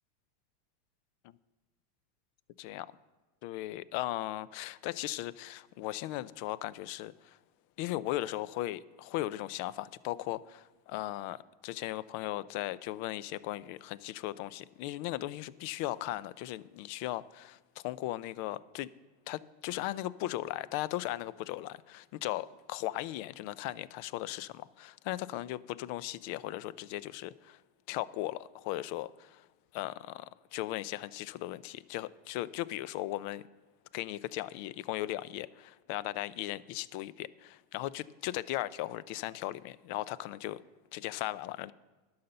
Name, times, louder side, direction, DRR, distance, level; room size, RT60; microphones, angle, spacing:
voice 1, 3.4-7.4 7.8-18.9 19.3-27.6 27.9-29.5 29.7-33.4 33.9-40.6 40.9-41.7, left 15 dB, 60° left, 0.4 m, -37 dB
11.5 x 5.6 x 6.6 m
hypercardioid pair, 110°, 0 cm